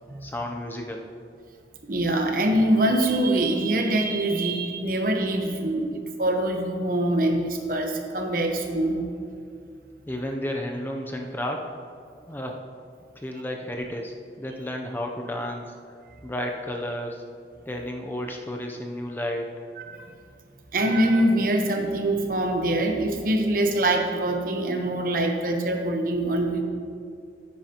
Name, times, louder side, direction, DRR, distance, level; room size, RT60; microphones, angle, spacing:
voice 1, 0.2-1.1 10.1-11.7 12.3-12.6 13.2-15.7 16.2-17.2 17.7-19.5, left 1 dB, 10° left, 2 dB, 0.5 m, -32 dB
voice 2, 1.9-9.0 19.8-20.1 20.7-26.6, right 1 dB, 50° right, 3 dB, 0.9 m, -24 dB
10.5 x 9.0 x 2.9 m, 2.4 s
head